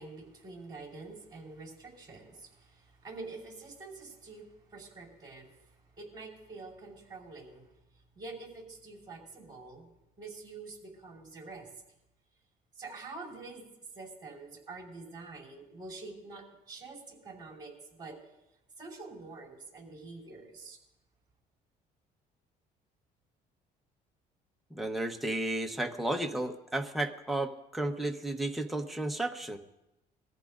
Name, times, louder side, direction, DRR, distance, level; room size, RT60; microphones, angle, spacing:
voice 1, 0.0-7.6 8.1-9.9 10.2-11.7 12.7-13.6 13.9-18.2 18.8-20.8, right 3 dB, 25° right, -1 dB, 5.0 m, -46 dB
voice 2, 24.7-29.6, right 1 dB, ahead, 3 dB, 1.1 m, -33 dB
22.5 x 14.5 x 2.6 m, 0.90 s
cardioid pair, 110°, 17 cm